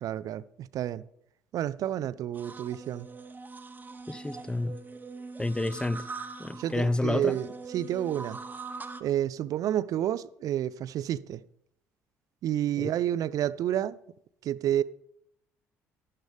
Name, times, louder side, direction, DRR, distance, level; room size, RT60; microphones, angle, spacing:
voice 1, 0.0-1.0 1.5-3.1 6.6-8.4 9.0-11.4 12.4-14.0 14.4-14.8, right 11 dB, 50° right, 0.4 m, -30 dB
sound 1, 2.3-9.0, right 4 dB, 25° right, 0.9 m, -42 dB
voice 2, 4.1-4.8 5.4-6.1 6.4-7.4 12.8-12.9, left 2 dB, 10° left, 0.5 m, -29 dB
12.0 x 11.0 x 3.5 m
figure-of-eight pair, 50°, 8 cm